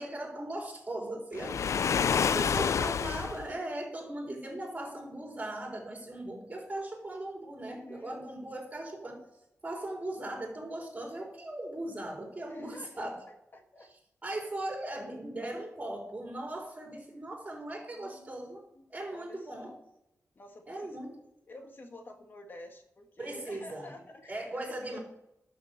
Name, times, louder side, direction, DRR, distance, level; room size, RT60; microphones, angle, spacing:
voice 1, 0.0-9.2 9.6-13.2 14.2-18.6 18.9-19.7 20.7-21.1 23.2-23.9 24.3-25.0, right 1 dB, 25° right, 0 dB, 4.0 m, -39 dB
Waves surf, 1.3-3.5, left 7 dB, 70° left, 0.4 m, -28 dB
voice 2, 7.6-8.2 12.5-13.1 13.5-13.9 17.8-18.4 18.7-19.8 20.3-21.0 21.5-25.0, left 1 dB, 40° left, 4 dB, 1.8 m, -50 dB
12.0 x 6.4 x 6.6 m, 0.84 s
wide cardioid pair, 130°, 5 cm